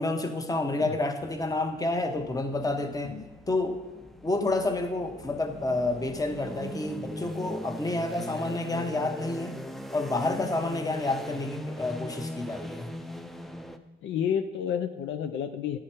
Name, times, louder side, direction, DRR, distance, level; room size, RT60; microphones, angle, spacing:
voice 1, 0.0-3.1 3.5-3.8 4.2-9.6 9.9-12.9, left 2 dB, 20° left, 6 dB, 0.9 m, -29 dB
sound 1, 1.2-13.8, left 1 dB, ahead, 0.5 m, -40 dB
voice 2, 14.0-15.8, left 8 dB, 70° left, 7 dB, 0.5 m, -30 dB
10.0 x 4.9 x 4.4 m, 1.1 s
cardioid pair, 90°, 20 cm